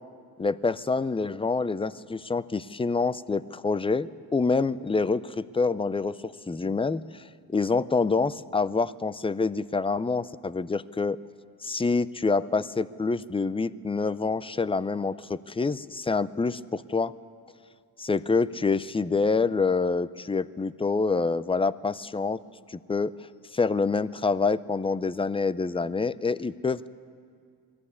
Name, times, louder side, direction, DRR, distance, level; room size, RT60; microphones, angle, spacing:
voice 1, 0.4-7.2 7.5-11.2 11.6-17.1 18.0-22.4 22.7-23.1 23.5-26.9, left 4 dB, 15° left, 17 dB, 0.5 m, -26 dB
20.5 x 14.0 x 9.7 m, 2.2 s
cardioid pair, 70°, 42 cm